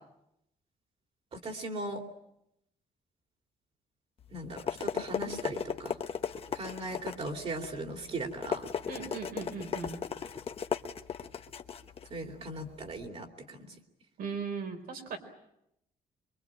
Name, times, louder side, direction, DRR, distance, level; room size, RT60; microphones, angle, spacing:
voice 1, 1.3-2.0 4.3-5.9 6.5-8.6 12.1-13.7, right 2 dB, 40° right, 5 dB, 3.0 m, -38 dB
sound 1, 4.2-13.1, left 7 dB, 40° left, 1.2 m, -37 dB
voice 2, 8.9-10.0 14.2-15.2, right 5 dB, 75° right, 6 dB, 4.4 m, -38 dB
24.0 x 24.0 x 8.9 m, 0.82 s
cardioid pair, 155°, 16 cm